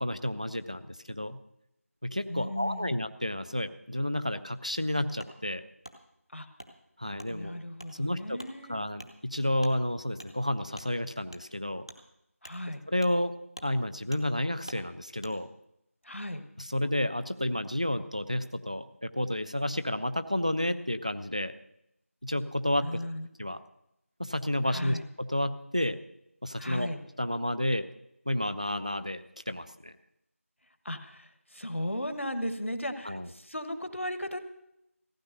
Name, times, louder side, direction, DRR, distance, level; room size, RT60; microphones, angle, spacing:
voice 1, 0.0-1.4 2.0-5.6 7.0-7.6 8.0-8.4 8.7-11.8 12.9-13.3 13.6-15.5 16.6-21.5 22.2-22.9 23.4-23.6 24.2-26.0 26.4-26.9 27.2-27.9 28.3-30.0 33.0-33.3, left 1 dB, 30° right, 13 dB, 0.4 m, -31 dB
voice 2, 2.3-3.0 6.3-6.5 7.3-8.8 12.4-12.8 16.0-16.4 22.8-23.3 24.7-25.0 26.6-27.0 30.8-34.4, left 1 dB, 60° left, 10 dB, 1.3 m, -36 dB
Wood, 5.2-5.3 5.8-6.0 6.6-6.7 7.2-7.3 7.8-7.9 8.4-8.5 9.0-9.1 9.6-9.8 10.2-10.3 10.7-10.9 11.3-11.4 11.8-12.0 12.4-12.6 13.0-13.2 13.5-13.7 14.1-14.2 14.7-14.8 15.2-15.3, right 1 dB, 20° left, 0.6 m, -46 dB
15.0 x 9.5 x 6.4 m, 0.80 s
figure-of-eight pair, 175°, 8 cm